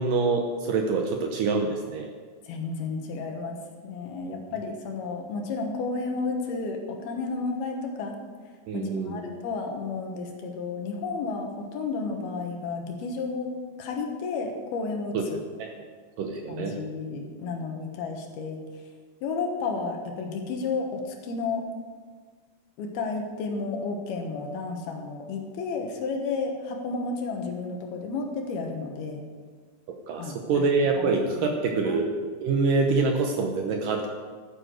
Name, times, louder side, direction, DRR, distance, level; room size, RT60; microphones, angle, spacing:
voice 1, 0.0-2.1 4.3-4.4 8.7-9.2 15.1-15.2 15.6-15.7 16.2-16.8 29.9-32.1 32.4-34.1, right 4 dB, 70° right, 3 dB, 2.2 m, -26 dB
voice 2, 2.5-3.6 3.8-8.2 8.7-13.5 13.8-15.2 16.5-18.6 19.2-21.7 22.8-29.2 30.2-30.4 31.0-31.1 31.3-31.6 31.8-32.0, left 4 dB, 75° left, 3 dB, 3.2 m, -32 dB
12.0 x 9.8 x 6.4 m, 1.5 s
omnidirectional pair, 4.7 m